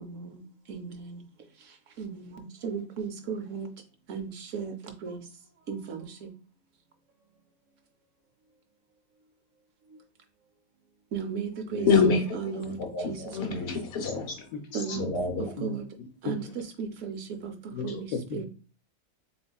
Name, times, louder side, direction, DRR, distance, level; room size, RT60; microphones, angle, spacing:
voice 1, 0.0-0.4 0.7-0.9 2.0-2.4 2.6-3.7 4.1-4.7 5.0-5.2 5.7-5.8 11.1-11.9 12.3-12.8 13.1-13.2 13.5-13.7 14.7-15.1 15.6-15.8 16.2-16.4 16.8-17.2 17.4-17.5 17.8-18.0 18.3-18.4, right 6 dB, 70° right, 1.0 m, -34 dB
voice 2, 11.7-12.2 12.6-14.3 14.9-15.5, left 4 dB, 55° left, 1.0 m, -26 dB
voice 3, 14.0-15.0 15.6-15.8 16.2-16.5 17.7-17.9 18.1-18.4, left 4 dB, 85° left, 1.1 m, -36 dB
4.1 x 3.2 x 2.3 m
omnidirectional pair, 1.4 m